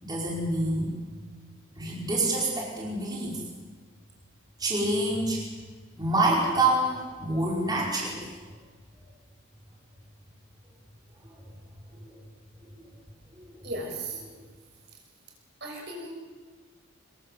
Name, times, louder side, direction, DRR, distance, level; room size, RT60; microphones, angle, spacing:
voice 1, 0.0-1.0 1.8-3.4 4.6-5.4 6.0-8.3 11.3-11.4 12.0-12.1 13.4-13.5, right 2 dB, 20° right, -4 dB, 5.1 m, -27 dB
voice 2, 13.6-14.2 15.6-16.1, right 2 dB, 50° right, 1 dB, 6.4 m, -36 dB
25.5 x 22.0 x 7.8 m, 1.5 s
head